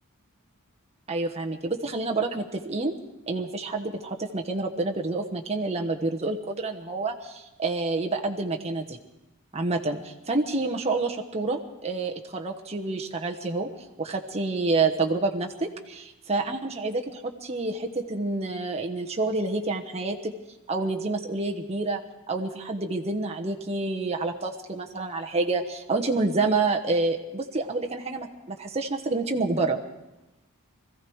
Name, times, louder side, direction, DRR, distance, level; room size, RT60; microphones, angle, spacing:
voice 1, 1.1-2.9 3.3-9.0 9.5-13.7 14.0-20.3 20.7-22.0 22.3-29.8, right 3 dB, 30° right, 1 dB, 1.1 m, -28 dB
21.0 x 14.5 x 4.7 m, 0.95 s
head